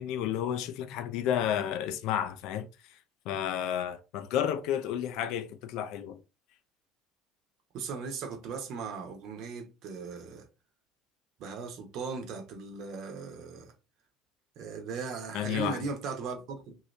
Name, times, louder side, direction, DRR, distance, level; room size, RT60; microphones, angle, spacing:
voice 1, 0.0-3.0 3.3-6.2 15.3-15.8, left 10 dB, 65° left, 0.4 m, -31 dB
voice 2, 7.7-10.5 11.4-13.7 14.6-16.8, right 5 dB, 60° right, 1.0 m, -38 dB
2.8 x 2.7 x 3.1 m
hypercardioid pair, 65°, 0 cm